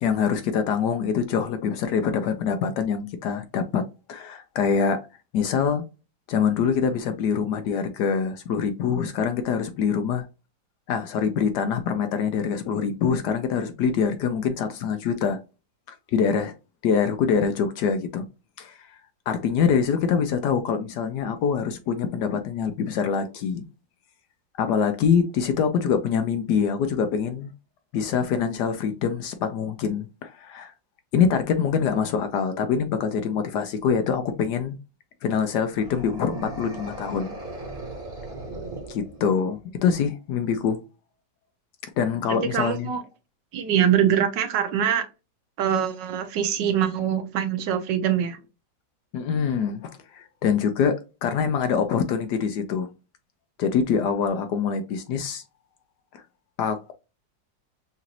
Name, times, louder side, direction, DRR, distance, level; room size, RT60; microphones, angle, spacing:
voice 1, 0.0-5.0 5.3-5.8 6.3-10.3 10.9-15.4 15.9-16.5 16.8-18.3 18.6-18.8 19.3-23.6 24.6-27.5 27.9-30.7 31.1-34.8 35.2-37.3 38.9-40.8 42.0-42.9 49.1-52.9 53.6-55.4 56.6-56.9, left 6 dB, 70° left, 1.1 m, -24 dB
sound 1, 35.7-39.6, right 2 dB, 30° right, 1.2 m, -38 dB
voice 2, 42.3-43.0 43.5-45.0 45.6-48.4, right 9 dB, 75° right, 1.2 m, -23 dB
5.9 x 2.5 x 2.8 m
omnidirectional pair, 2.1 m